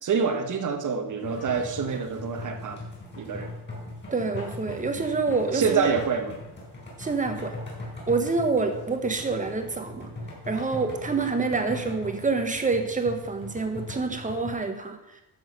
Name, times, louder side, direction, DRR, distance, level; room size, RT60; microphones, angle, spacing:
voice 1, 0.0-2.8 3.2-3.5 5.5-6.3, right 6 dB, 45° right, 6 dB, 1.3 m, -26 dB
sound 1, 1.2-14.5, left 1 dB, 25° left, 4.7 m, -39 dB
voice 2, 4.1-5.9 7.0-7.5 8.1-10.1 10.5-15.0, right 4 dB, 20° right, 6 dB, 1.2 m, -27 dB
12.0 x 7.2 x 5.5 m, 0.95 s
wide cardioid pair, 170°, 41 cm